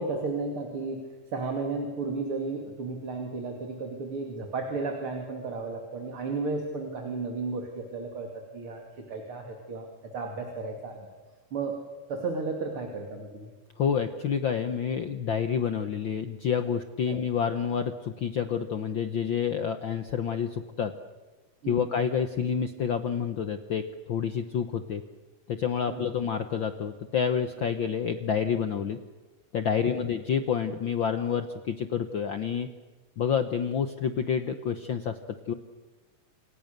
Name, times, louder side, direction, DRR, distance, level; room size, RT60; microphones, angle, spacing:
voice 1, 0.0-11.1 11.5-11.8 12.1-13.5 17.1-17.2 21.6-21.8 25.9-26.0 29.8-30.1, right 3 dB, 45° right, 3 dB, 3.2 m, -34 dB
voice 2, 13.8-20.9 21.7-25.0 25.5-29.0 29.5-32.7 33.2-35.2 35.5-35.6, left 7 dB, 75° left, 9 dB, 1.1 m, -28 dB
28.5 x 27.5 x 6.8 m, 1.3 s
omnidirectional pair, 3.7 m